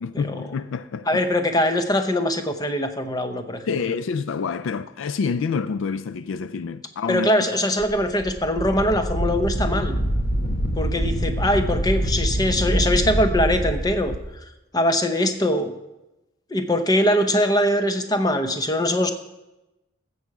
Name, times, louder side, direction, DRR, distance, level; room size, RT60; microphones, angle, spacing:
voice 1, 0.0-1.2 3.7-7.3, left 5 dB, 70° left, 0.3 m, -27 dB
voice 2, 1.1-3.6 7.1-9.9 10.8-14.1 14.7-15.7 16.5-19.1, left 1 dB, 20° left, 0.8 m, -22 dB
Wind, 7.8-14.2, equal, 45° left, 1.2 m, -25 dB
15.5 x 7.0 x 4.7 m
head